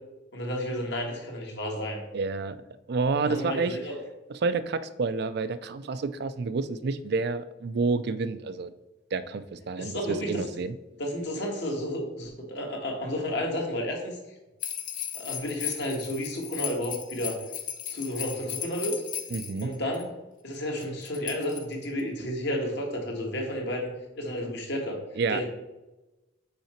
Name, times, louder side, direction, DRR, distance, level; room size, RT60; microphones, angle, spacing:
voice 1, 0.3-2.0 3.2-3.9 9.8-10.4 11.0-14.2 15.1-17.4 17.9-18.9 19.6-20.1 20.4-25.0 25.3-25.5, equal, 60° left, 0 dB, 1.5 m, -32 dB
voice 2, 2.1-2.6 2.9-3.8 4.3-8.7 9.1-10.7 19.3-19.7 25.2-25.4, right 4 dB, 55° right, 13 dB, 0.4 m, -29 dB
sound 1, 14.6-20.0 20.8-22.0, left 10 dB, 45° left, 0.6 m, -36 dB
5.6 x 4.9 x 4.4 m, 1.0 s
head